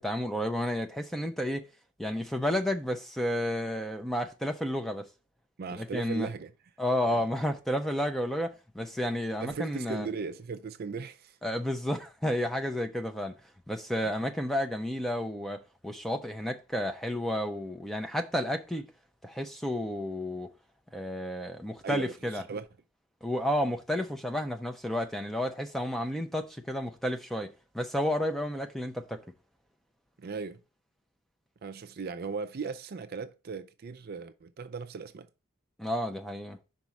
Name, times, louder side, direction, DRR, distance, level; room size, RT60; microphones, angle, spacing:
voice 1, 0.0-1.6 2.0-5.1 5.7-6.3 6.8-10.1 11.4-13.3 13.7-18.9 19.2-20.5 20.9-22.4 23.2-27.5 27.7-29.2 35.8-36.6, equal, ahead, 0.6 m, -31 dB
voice 2, 5.6-6.5 7.1-7.2 9.4-11.4 14.0-14.1 21.8-22.7 30.2-30.6 31.6-35.3, right 5 dB, 45° right, 0.4 m, -38 dB
5.3 x 4.2 x 5.9 m
head